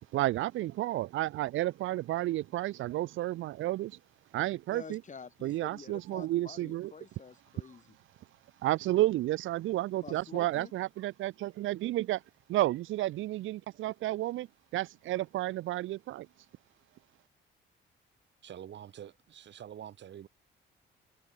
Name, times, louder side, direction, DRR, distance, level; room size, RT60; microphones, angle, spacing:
voice 1, 0.1-4.0 4.3-5.0 5.4-6.9 8.6-12.2 12.5-14.5 14.7-16.3, right 15 dB, 85° right, 1.0 m, -31 dB
voice 2, 4.7-7.9 10.0-10.7, left 5 dB, 40° left, 6.8 m, -48 dB
voice 3, 18.4-20.3, right 10 dB, 65° right, 4.3 m, -46 dB
cardioid pair, 90°, 20 cm